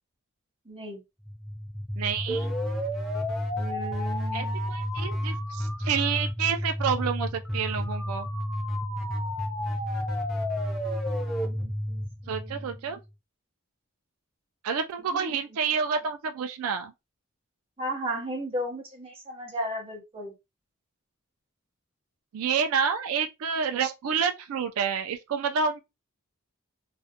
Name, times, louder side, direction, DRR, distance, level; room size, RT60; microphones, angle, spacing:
voice 1, 0.7-1.0 3.6-4.6 11.4-13.0 15.1-15.4 17.8-20.3, equal, 25° right, 0.8 m, -35 dB
sound 1, 1.3-13.1, equal, ahead, 0.5 m, -31 dB
voice 2, 2.0-2.5 4.3-8.3 12.3-13.0 14.6-16.9 22.3-25.8, right 6 dB, 85° right, 0.3 m, -29 dB
2.4 x 2.1 x 2.7 m
head